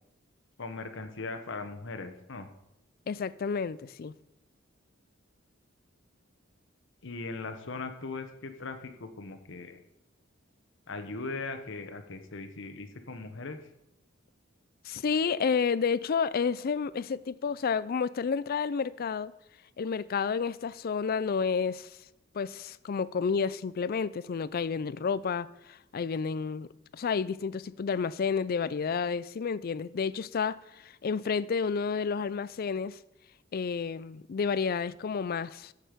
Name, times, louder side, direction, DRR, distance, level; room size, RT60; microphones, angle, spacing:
voice 1, 0.6-2.5 7.0-9.8 10.9-13.6, left 3 dB, 65° left, 1.1 m, -39 dB
voice 2, 3.1-4.1 14.8-19.3 19.8-21.9 22.3-26.7 26.9-33.0 33.5-35.7, left 5 dB, 50° left, 0.4 m, -30 dB
14.0 x 6.6 x 5.1 m
head